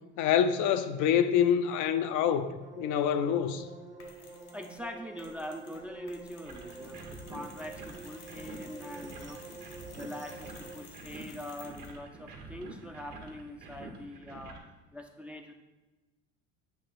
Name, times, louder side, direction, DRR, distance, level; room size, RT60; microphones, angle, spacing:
voice 1, 0.2-3.7, left 8 dB, 55° left, 0.5 m, -26 dB
sound 1, 2.6-10.8, right 3 dB, 20° right, 0.8 m, -48 dB
Mechanisms, 4.0-4.8 5.2-12.0, left 4 dB, 80° left, 1.4 m, -54 dB
voice 2, 4.5-9.4 9.9-14.6 14.9-15.5, left 1 dB, 5° right, 0.4 m, -43 dB
sound 2, 6.4-14.6, right 3 dB, 65° right, 1.4 m, -48 dB
7.9 x 3.0 x 4.1 m
supercardioid pair, 90°, 36 cm